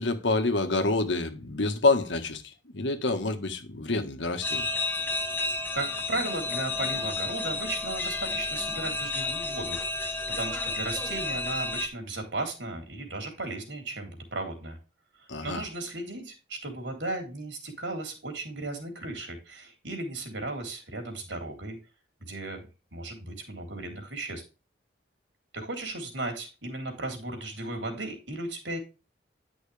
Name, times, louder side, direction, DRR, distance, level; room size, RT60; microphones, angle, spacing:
voice 1, 0.0-4.7 15.3-15.6, left 3 dB, 85° left, 1.7 m, -27 dB
sound 1, 4.4-11.9, left 3 dB, 10° left, 1.2 m, -31 dB
voice 2, 5.7-14.8 15.4-21.8 22.2-22.7 22.9-24.4 25.5-28.8, right 2 dB, 85° right, 3.7 m, -35 dB
11.0 x 6.3 x 3.4 m
head